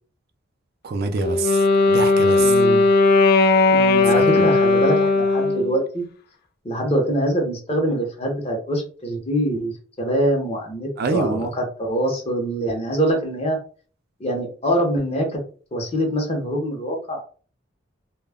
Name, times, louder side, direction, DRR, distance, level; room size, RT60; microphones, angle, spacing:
voice 1, 0.8-2.6 4.1-4.4 11.0-11.5, right 4 dB, 55° right, 0.3 m, -26 dB
Wind instrument woodwind instrument, 1.2-5.7, left 3 dB, 50° left, 0.3 m, -17 dB
voice 2, 2.4-2.8 3.7-6.1 6.6-9.7 10.0-11.5 11.8-13.6 14.2-15.4 15.7-17.2, right 1 dB, 30° left, 0.7 m, -24 dB
2.2 x 2.1 x 3.4 m
head